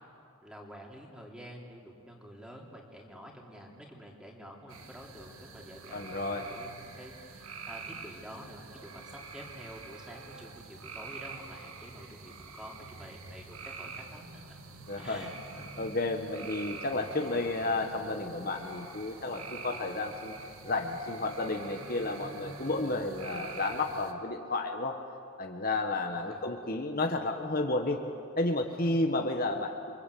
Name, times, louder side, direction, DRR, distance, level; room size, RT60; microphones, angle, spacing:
voice 1, 0.4-14.6 15.0-15.7 26.1-26.4 28.8-29.0, equal, 5° right, -1 dB, 3.4 m, -48 dB
sound 1, 4.7-24.1, right 4 dB, 70° right, 1.9 m, -46 dB
voice 2, 5.9-6.4 14.9-15.3 15.8-20.3 20.6-25.0 25.4-28.0 28.4-30.0, left 2 dB, 40° left, 3 dB, 1.3 m, -32 dB
29.0 x 24.0 x 8.5 m, 2.6 s
head